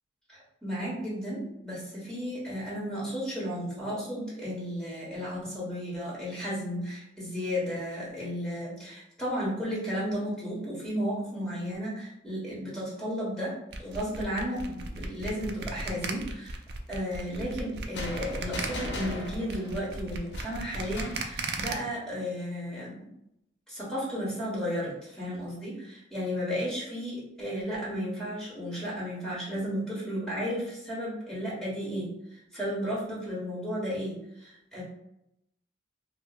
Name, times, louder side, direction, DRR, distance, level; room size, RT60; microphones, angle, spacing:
voice 1, 0.3-13.5 13.8-16.6 16.9-23.1 23.7-34.8, equal, 5° left, -8 dB, 1.3 m, -34 dB
sound 1, 13.7-21.7, right 3 dB, 55° right, 0.4 m, -36 dB
sound 2, 17.9-21.3, left 1 dB, 65° left, 0.8 m, -38 dB
5.0 x 2.0 x 2.4 m, 0.81 s
head